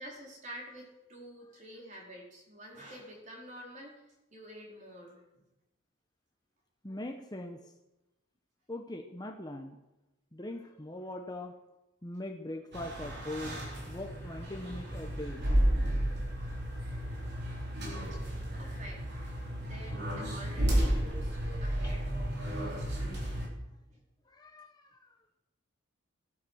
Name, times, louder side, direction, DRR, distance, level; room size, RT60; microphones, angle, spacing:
voice 1, 0.0-4.0 4.3-5.4 18.1-18.2 18.5-19.0 19.6-23.4 23.9-24.0, right 1 dB, 35° right, -2 dB, 4.6 m, -49 dB
voice 2, 6.8-7.7 8.7-9.8 10.3-11.5 12.0-15.4 16.4-16.6 21.8-21.9 23.4-23.6 24.3-25.2, left 1 dB, 20° left, 3 dB, 1.1 m, -42 dB
sound 1, 12.7-23.5, equal, 50° right, 4.4 m, -32 dB
17.0 x 11.5 x 6.5 m, 0.97 s
head